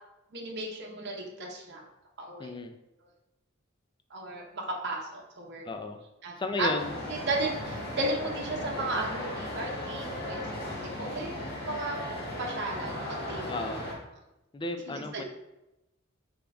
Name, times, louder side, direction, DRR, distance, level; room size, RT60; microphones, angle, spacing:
voice 1, 0.3-1.8 2.2-2.5 4.1-5.6 6.2-6.7 7.1-12.0 12.4-13.7 14.9-15.2, right 2 dB, 60° right, -1 dB, 0.9 m, -35 dB
voice 2, 2.4-2.8 5.6-6.0 6.4-7.0 13.5-13.9 14.5-15.2, left 2 dB, 25° left, 6 dB, 0.4 m, -34 dB
sound 1, 6.8-13.9, left 1 dB, 55° left, 1.3 m, -36 dB
3.8 x 3.5 x 3.4 m, 0.93 s
head